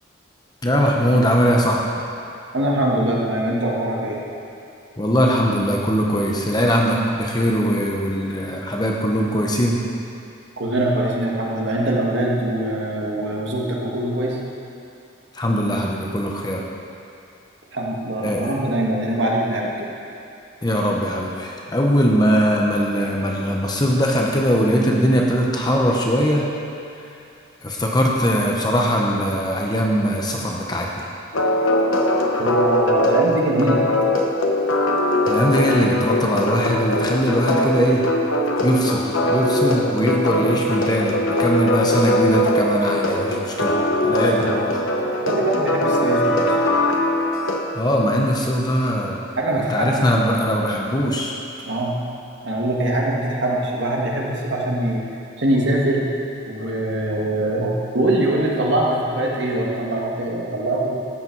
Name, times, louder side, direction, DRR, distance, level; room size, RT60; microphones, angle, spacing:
voice 1, 0.6-1.8 5.0-9.8 15.3-16.6 18.2-18.5 20.6-26.4 27.0-27.1 27.6-31.1 35.2-38.0 38.6-43.7 44.0-44.8 47.7-49.2 49.7-51.3, equal, 20° left, -1 dB, 0.9 m, -20 dB
voice 2, 2.5-4.2 10.6-14.4 17.7-19.9 32.4-33.8 44.1-44.3 45.3-46.6 49.4-50.3 51.7-52.0 52.4-55.0 55.4-56.0 56.4-61.0, right 1 dB, 65° right, -3 dB, 1.8 m, -23 dB
sound 1, 31.3-47.6, left 1 dB, 85° left, 1.1 m, -21 dB
13.5 x 8.8 x 4.7 m, 2.6 s
head